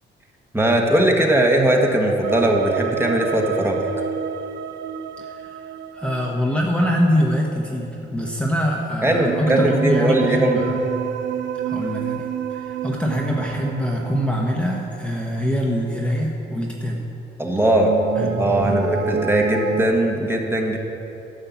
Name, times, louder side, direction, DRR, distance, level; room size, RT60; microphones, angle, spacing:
voice 1, 0.5-3.8 9.0-10.6 17.4-17.9 18.2-20.8, right 1 dB, 10° right, 1 dB, 1.3 m, -19 dB
sound 1, 2.2-7.0 9.0-15.3 17.5-19.8, right 8 dB, 65° right, 0.5 m, -30 dB
voice 2, 5.2-5.6 5.9-10.9 11.6-17.1 18.2-18.7, equal, 5° left, -2 dB, 1.1 m, -24 dB
11.5 x 5.5 x 7.1 m, 2.9 s
cardioid pair, 90°, 20 cm